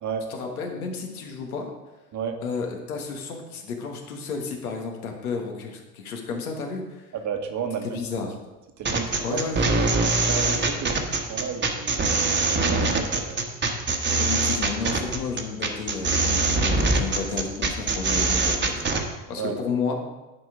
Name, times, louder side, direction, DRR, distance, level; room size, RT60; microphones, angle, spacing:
voice 1, 0.3-1.7 2.4-7.1 7.8-8.3 9.2-9.7 14.2-19.9, left 4 dB, 90° left, 2 dB, 1.5 m, -32 dB
voice 2, 7.1-8.0 8.8-9.4 10.3-13.4 19.4-19.6, right 7 dB, 45° right, 5 dB, 1.4 m, -32 dB
sound 1, 8.8-19.0, right 3 dB, 25° right, 1.3 m, -23 dB
10.5 x 4.2 x 5.0 m, 1.1 s
hypercardioid pair, 85°, 42 cm